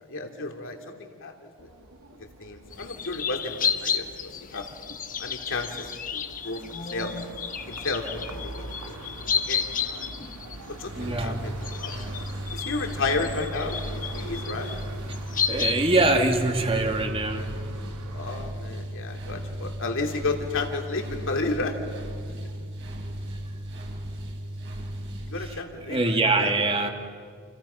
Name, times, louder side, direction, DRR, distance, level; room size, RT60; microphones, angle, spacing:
voice 1, 0.0-1.5 2.4-4.7 5.2-6.6 6.9-7.1 7.7-10.1 10.8-11.5 11.8-12.2 12.5-14.7 18.1-21.8 25.3-26.5, left 3 dB, 60° left, 3 dB, 2.8 m, -32 dB
sound 1, 1.6-18.5, right 1 dB, 85° right, 2.4 m, -43 dB
sound 2, 2.7-11.2 11.6-15.7, left 7 dB, 35° left, 1.2 m, -32 dB
voice 2, 10.9-11.5 15.5-17.5 25.4-26.9, right 2 dB, 25° right, 4 dB, 2.4 m, -24 dB
sound 3, 10.9-25.4, right 1 dB, 55° right, 5.6 m, -36 dB
29.5 x 28.5 x 5.8 m, 2.1 s
head